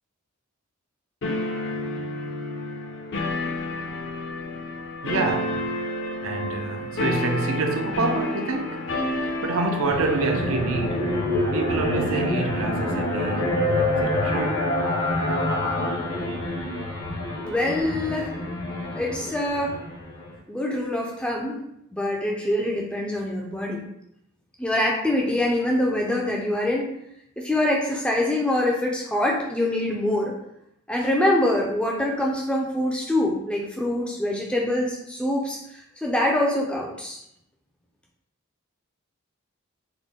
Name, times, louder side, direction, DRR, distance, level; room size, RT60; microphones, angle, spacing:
sound 1, 1.2-11.3, left 2 dB, 55° left, 0.5 m, -30 dB
voice 1, 5.0-5.7 6.2-8.8 9.2-11.1 11.5-13.6 13.9-14.7 16.3-16.4, right 3 dB, 70° right, 0.5 m, -27 dB
sound 2, 9.9-20.3, left 1 dB, 75° left, 1.1 m, -26 dB
voice 2, 17.5-18.4 18.9-19.7 20.5-21.6 21.9-23.8 24.6-26.9 27.4-30.3 30.9-37.2, left 1 dB, 5° left, 0.3 m, -24 dB
3.6 x 2.1 x 3.5 m
head